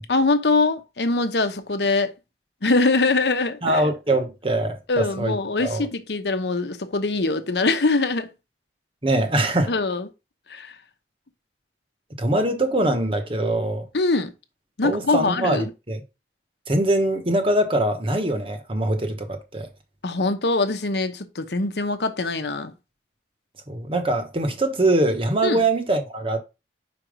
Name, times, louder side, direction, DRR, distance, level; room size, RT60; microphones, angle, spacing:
voice 1, 0.1-2.1 2.6-3.8 4.9-8.3 9.7-10.1 10.5-10.7 13.9-14.3 14.8-15.7 20.0-22.7 25.4-25.6, left 3 dB, 70° left, 0.9 m, -23 dB
voice 2, 3.6-5.3 5.6-5.9 9.0-9.7 12.2-13.8 14.8-16.0 16.7-19.7 23.7-26.4, right 1 dB, 30° right, 1.1 m, -23 dB
5.2 x 4.6 x 5.1 m
head